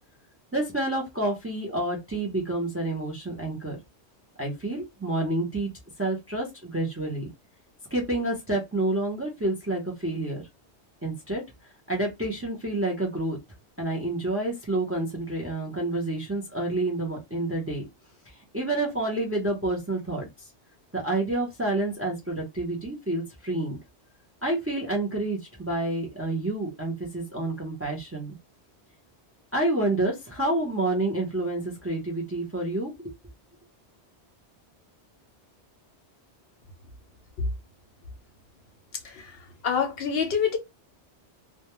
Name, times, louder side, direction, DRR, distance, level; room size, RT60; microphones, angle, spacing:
voice 1, 0.5-3.8 4.4-5.7 6.0-7.3 7.9-10.4 11.0-11.4 11.9-13.4 13.8-17.8 18.5-20.3 20.9-23.8 24.4-28.3 29.5-32.9, right 2 dB, 15° right, 0.5 m, -28 dB
voice 2, 39.0-39.4 39.6-40.6, left 6 dB, 65° left, 0.8 m, -26 dB
2.2 x 2.1 x 2.9 m
omnidirectional pair, 1.2 m